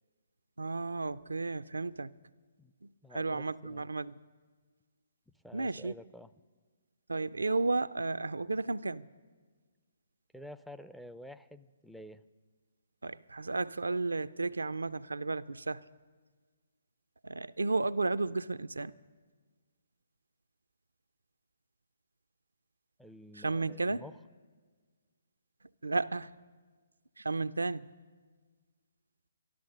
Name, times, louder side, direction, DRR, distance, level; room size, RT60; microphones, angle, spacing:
voice 1, 0.6-2.1 2.8-4.1 5.5-5.9 7.1-9.1 13.0-15.8 17.2-18.9 23.4-24.0 25.8-26.3 27.2-27.9, right 3 dB, 80° right, 0.4 m, -33 dB
voice 2, 3.0-3.8 5.4-6.3 10.3-12.2 23.0-24.1, left 1 dB, ahead, 0.4 m, -50 dB
12.5 x 12.5 x 6.5 m
figure-of-eight pair, 135°, 0 cm